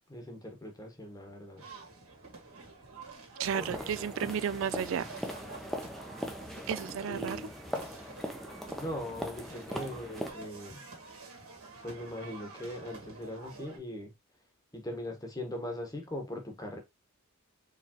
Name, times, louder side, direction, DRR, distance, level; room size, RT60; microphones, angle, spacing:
voice 1, 0.1-1.7 7.1-7.5 8.8-10.8 11.8-14.1 14.7-16.8, left 1 dB, 15° left, 1.1 m, -40 dB
sound 1, 1.6-13.8, right 4 dB, 80° right, 1.8 m, -48 dB
sound 2, 3.4-10.3, equal, ahead, 0.7 m, -40 dB
voice 2, 3.4-5.1 6.7-7.4, right 8 dB, 60° right, 0.3 m, -33 dB
4.6 x 3.4 x 2.9 m
head